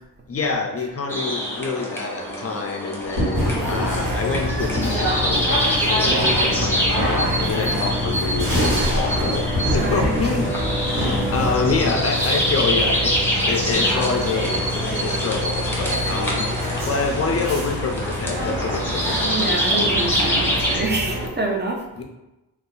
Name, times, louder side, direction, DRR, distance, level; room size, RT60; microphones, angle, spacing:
voice 1, 0.3-10.5 11.0-16.5 16.8-19.2 22.0-22.1, left 4 dB, 40° left, 3 dB, 0.4 m, -27 dB
sound 1, 1.1-20.8, equal, 5° left, 0.9 m, -25 dB
sound 2, 3.1-12.1, equal, 80° right, 1.4 m, -28 dB
sound 3, 3.4-21.3, left 1 dB, 60° right, 1.3 m, -26 dB
voice 2, 9.7-10.3 19.2-21.9, right 2 dB, 30° right, 1 dB, 0.6 m, -26 dB
2.6 x 2.3 x 4.0 m, 0.96 s
cardioid pair, 80°, 36 cm